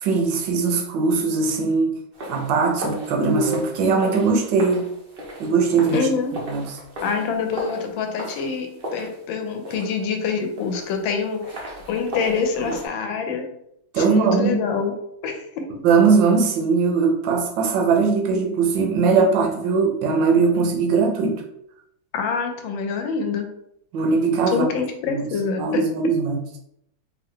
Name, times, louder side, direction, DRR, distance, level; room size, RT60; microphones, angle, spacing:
voice 1, 0.0-2.0 2.3-4.9 5.4-6.1 6.5-6.7 12.6-12.7 13.9-14.6 15.8-21.4 23.9-24.7 25.1-25.2 25.6-26.4, right 4 dB, 75° right, 2 dB, 1.4 m, -20 dB
sound 1, 2.1-12.9, equal, 40° right, 0.8 m, -37 dB
sound 2, 3.1-4.2, left 1 dB, 20° right, 0.5 m, -29 dB
voice 2, 5.9-6.3 7.0-13.4 14.0-14.9 15.2-15.8 22.1-23.5 24.5-26.1, left 5 dB, 80° left, 5 dB, 1.4 m, -26 dB
3.4 x 3.1 x 3.6 m, 0.76 s
omnidirectional pair, 2.2 m